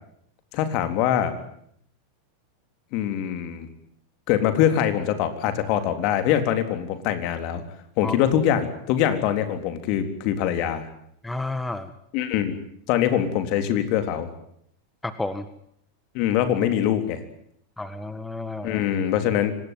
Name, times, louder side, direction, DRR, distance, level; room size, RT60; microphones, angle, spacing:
voice 1, 0.5-1.3 2.9-3.7 4.3-7.6 8.0-10.9 12.1-12.6 12.9-14.3 16.1-17.2 18.6-19.5, left 10 dB, 50° left, 8 dB, 3.7 m, -23 dB
voice 2, 11.2-11.9 15.0-15.5 17.8-18.8, left 2 dB, 5° left, 11 dB, 1.6 m, -31 dB
25.0 x 19.5 x 9.4 m, 0.69 s
figure-of-eight pair, 90°, 0 cm